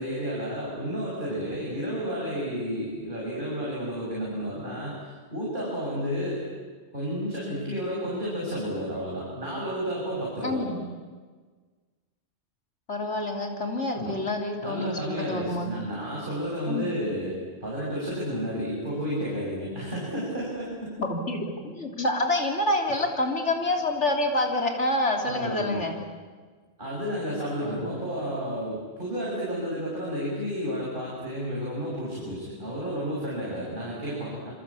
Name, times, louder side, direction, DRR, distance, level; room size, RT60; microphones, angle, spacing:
voice 1, 0.0-6.4 6.9-10.7 13.9-14.1 14.6-21.0 22.8-22.9 25.2-25.9 26.8-34.5, equal, 40° right, -5 dB, 7.0 m, -31 dB
voice 2, 10.4-10.8 12.9-15.8 16.7-16.9 21.0-25.9 27.6-27.9, left 1 dB, 70° left, 3 dB, 3.7 m, -27 dB
27.0 x 25.5 x 8.6 m, 1.4 s
omnidirectional pair, 1.3 m